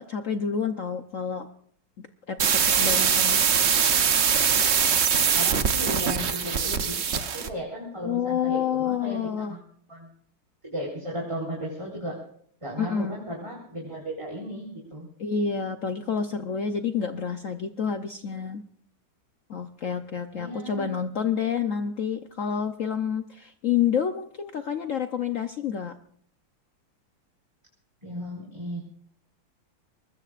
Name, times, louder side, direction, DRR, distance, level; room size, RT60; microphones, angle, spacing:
voice 1, 0.0-1.5 2.3-3.4 8.0-9.5 12.8-13.2 15.2-18.6 19.5-25.9, left 7 dB, 80° left, 7 dB, 0.7 m, -28 dB
sound 1, 2.4-7.5, right 7 dB, 60° right, 0.7 m, -22 dB
voice 2, 5.3-9.6 9.9-10.1 10.6-12.2 12.6-15.1 20.3-20.9 28.0-28.8, equal, 15° right, -3 dB, 4.0 m, -35 dB
23.5 x 20.5 x 2.5 m, 0.62 s
omnidirectional pair, 2.4 m